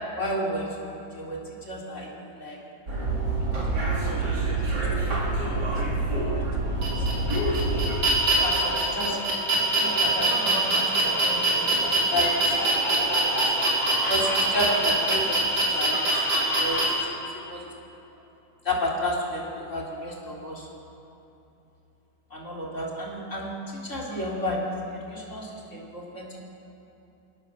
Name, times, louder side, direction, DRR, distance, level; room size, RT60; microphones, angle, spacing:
voice 1, 0.1-2.6 3.5-4.5 4.7-6.5 7.0-7.3 8.4-9.2 9.8-13.5 14.1-17.7 18.6-20.7 22.3-26.4, left 1 dB, 40° left, -3 dB, 4.0 m, -33 dB
sound 1, 2.9-8.0, right 2 dB, 60° right, 4.4 m, -26 dB
sound 2, 6.8-16.8, right 2 dB, 80° right, 6.2 m, -24 dB
25.5 x 18.5 x 7.5 m, 2.9 s
omnidirectional pair, 2.0 m